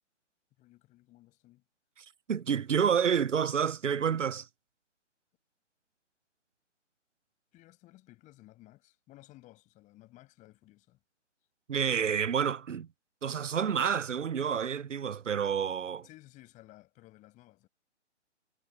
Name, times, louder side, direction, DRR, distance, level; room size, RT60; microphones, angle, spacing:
voice 1, 0.6-1.6 7.5-11.0 16.0-17.7, left 17 dB, 20° left, 7.3 m, -56 dB
voice 2, 2.0-4.5 11.7-12.9 13.2-16.1, right 7 dB, 85° right, 0.6 m, -29 dB
figure-of-eight pair, 135°, 36 cm